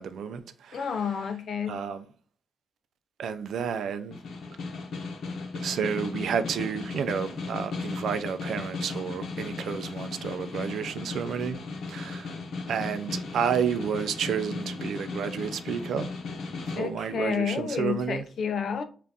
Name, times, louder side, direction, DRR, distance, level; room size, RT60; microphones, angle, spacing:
voice 1, 0.0-1.1 1.7-2.0 3.2-4.2 5.6-11.6 11.9-12.4 12.7-16.2 16.6-18.2, right 7 dB, 80° right, 0.4 m, -31 dB
voice 2, 0.7-1.8 16.8-18.8, left 6 dB, 55° left, 0.5 m, -30 dB
Snare drum, 4.1-16.9, left 3 dB, 70° left, 0.8 m, -36 dB
5.4 x 2.5 x 2.7 m
wide cardioid pair, 165°, 0 cm